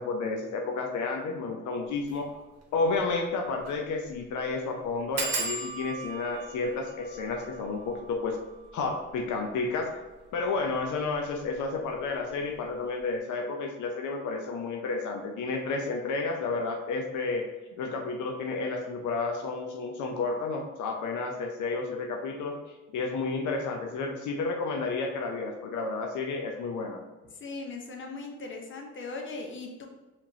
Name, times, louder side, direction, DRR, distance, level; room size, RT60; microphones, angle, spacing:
voice 1, 0.0-2.4 2.7-8.4 8.7-9.9 10.3-17.4 17.8-22.6 22.9-27.0, left 3 dB, 80° left, 2 dB, 0.6 m, -31 dB
sound 1, 2.0-2.2 2.6-2.7 2.9-3.0 3.6-3.8 4.1-4.2 5.2-10.4 11.1-11.6 11.9-12.3 12.5-12.6, right 3 dB, 55° right, 1.2 m, -38 dB
voice 2, 27.4-29.9, left 3 dB, 40° left, 2 dB, 0.9 m, -39 dB
4.9 x 3.5 x 2.8 m, 1.2 s
cardioid pair, 90°, 30 cm